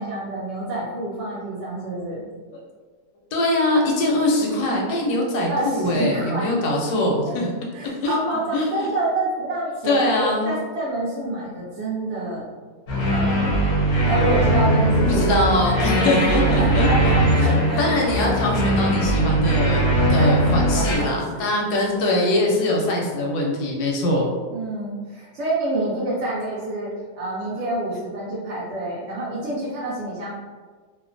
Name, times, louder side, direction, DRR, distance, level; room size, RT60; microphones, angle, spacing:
voice 1, 0.0-2.3 5.5-6.5 7.3-7.4 7.7-12.5 13.1-13.6 14.0-17.9 20.2-21.5 24.5-26.9 27.2-30.3, right 1 dB, 70° right, -7 dB, 0.6 m, -27 dB
voice 2, 3.3-7.5 8.0-8.2 8.5-8.7 9.9-10.5 15.1-24.3, left 1 dB, 80° left, -1 dB, 1.1 m, -22 dB
sound 1, 12.9-21.0, right 1 dB, 55° left, 0.7 m, -20 dB
2.8 x 2.0 x 2.5 m, 1.5 s
omnidirectional pair, 1.7 m